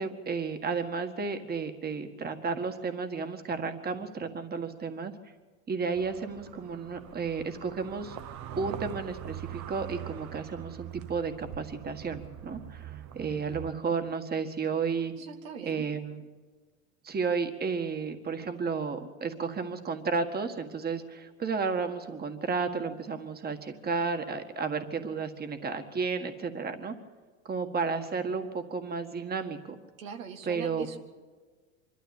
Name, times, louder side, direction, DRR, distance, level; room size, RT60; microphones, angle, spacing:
voice 1, 0.0-5.1 5.7-8.2 8.6-15.1 15.6-16.2 17.0-27.0 27.5-29.8 30.5-30.9, right 5 dB, 25° right, 7 dB, 1.8 m, -32 dB
man walking at night, 6.0-13.7, right 11 dB, 45° right, 1.1 m, -43 dB
voice 2, 15.2-15.8 30.0-31.0, right 6 dB, 80° right, 6 dB, 2.2 m, -41 dB
25.0 x 13.0 x 8.5 m, 1.4 s
hypercardioid pair, 100°, 39 cm